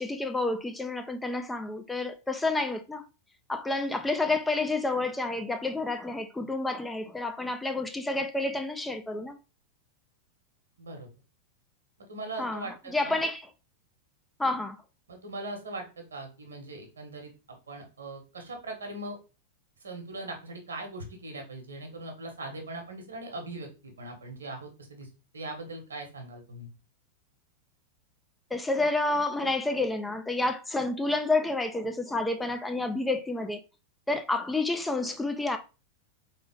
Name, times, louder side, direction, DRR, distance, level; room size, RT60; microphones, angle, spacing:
voice 1, 0.0-3.0 3.5-9.4 12.4-13.5 14.4-14.8 28.5-33.6 34.1-35.6, left 2 dB, 5° left, 0.4 m, -29 dB
voice 2, 10.8-11.1 12.1-13.2 15.1-17.3 17.7-19.2 19.8-25.1 25.3-26.7, right 2 dB, 70° right, 1.1 m, -40 dB
3.9 x 3.3 x 3.6 m
figure-of-eight pair, 90°, 0 cm